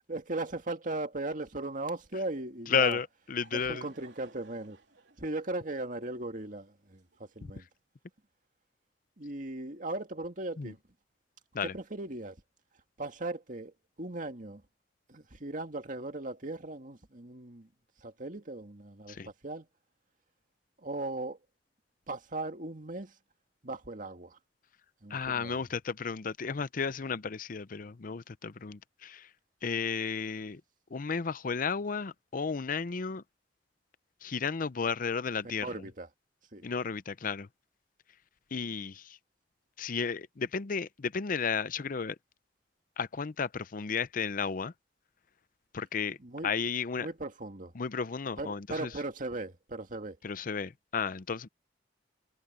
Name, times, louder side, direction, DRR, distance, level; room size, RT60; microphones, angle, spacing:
voice 1, 0.1-3.0 3.5-4.8 5.2-7.6 9.2-10.8 11.6-12.4 13.0-14.6 15.1-17.7 18.0-19.2 19.4-19.7 20.8-21.4 22.1-23.1 23.6-24.4 25.0-25.6 35.6-36.1 36.5-36.7 46.2-46.5 47.0-47.7 48.4-50.2, right 2 dB, 50° right, 2.1 m, -38 dB
voice 2, 2.7-3.9 10.6-10.7 11.5-11.7 19.1-19.3 25.1-29.3 29.6-30.6 30.9-33.2 34.2-35.9 36.6-37.5 38.5-39.0 39.8-42.2 43.0-44.7 45.7-46.2 46.4-47.1 47.8-48.9 50.2-51.5, left 5 dB, 50° left, 0.6 m, -33 dB
Laughter / Crowd, 3.0-7.6, right 2 dB, 90° right, 3.1 m, -59 dB
head